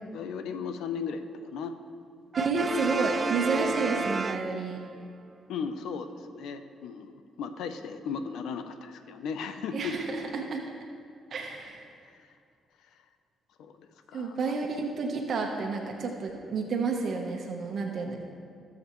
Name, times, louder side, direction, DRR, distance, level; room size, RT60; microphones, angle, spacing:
voice 1, 0.1-1.7 3.5-3.7 5.5-9.9 12.0-12.3 12.9-13.0 13.6-14.5, left 6 dB, 80° left, 8 dB, 0.6 m, -37 dB
Brass instrument, 2.3-5.0, right 4 dB, 35° right, 0.3 m, -32 dB
voice 2, 2.4-4.8 9.7-10.6 11.3-11.9 14.1-18.2, right 4 dB, 60° right, 2 dB, 1.1 m, -30 dB
19.0 x 7.2 x 3.1 m, 2.2 s
cardioid pair, 90°, 0 cm